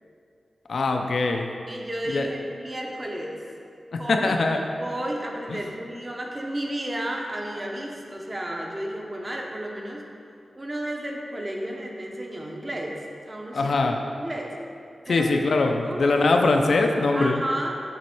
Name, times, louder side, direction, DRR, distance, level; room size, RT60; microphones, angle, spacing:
voice 1, 0.7-1.5 2.1-2.3 3.9-4.6 5.5-5.6 13.5-14.0 15.1-17.4, left 3 dB, 65° left, 3 dB, 0.4 m, -22 dB
voice 2, 1.7-3.4 4.0-4.3 4.8-10.0 10.5-13.0 13.3-13.8 14.2-14.5 15.0-15.3 15.8-16.1 17.1-17.7, right 1 dB, 25° right, 0 dB, 0.7 m, -32 dB
7.5 x 3.1 x 4.4 m, 2.4 s
wide cardioid pair, 145°, 0 cm